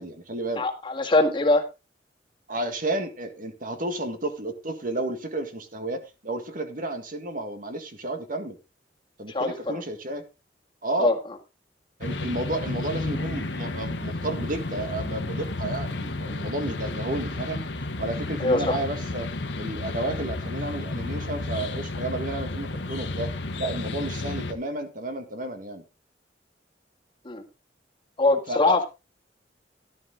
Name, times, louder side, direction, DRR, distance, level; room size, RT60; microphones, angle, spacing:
voice 1, 0.0-0.7 2.5-8.6 9.2-10.2 10.8-11.1 12.0-17.6 18.0-19.3 19.6-25.8 28.5-28.8, right 2 dB, 50° right, 7 dB, 1.9 m, -32 dB
voice 2, 0.6-1.6 9.3-9.8 11.0-11.2 18.4-18.8 27.2-27.4 28.2-28.9, left 2 dB, 30° left, 3 dB, 1.8 m, -22 dB
sound 1, 12.0-24.5, left 2 dB, 85° left, 1.4 m, -32 dB
12.0 x 10.5 x 3.7 m, 0.28 s
head